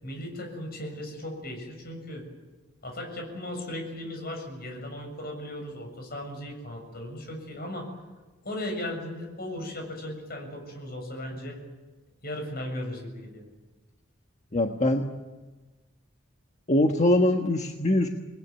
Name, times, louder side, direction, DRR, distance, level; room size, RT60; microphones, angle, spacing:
voice 1, 0.0-2.3 2.8-7.9 8.4-11.6 12.2-13.4, left 1 dB, 50° left, 3 dB, 7.2 m, -37 dB
voice 2, 14.5-15.0 16.7-18.1, left 1 dB, 35° left, 3 dB, 1.4 m, -22 dB
28.0 x 20.5 x 9.6 m, 1.2 s
head